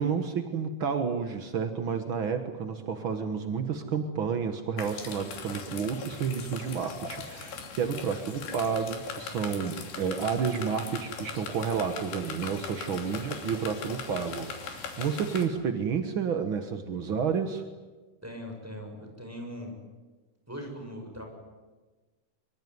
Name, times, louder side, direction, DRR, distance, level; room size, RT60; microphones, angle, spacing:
voice 1, 0.0-17.6, right 6 dB, 70° right, 7 dB, 1.2 m, -30 dB
sound 1, 4.8-15.5, left 5 dB, 80° left, 5.0 m, -40 dB
voice 2, 18.2-19.8 20.5-21.3, equal, 5° right, 2 dB, 6.6 m, -40 dB
25.0 x 24.0 x 9.6 m, 1.3 s
omnidirectional pair, 4.6 m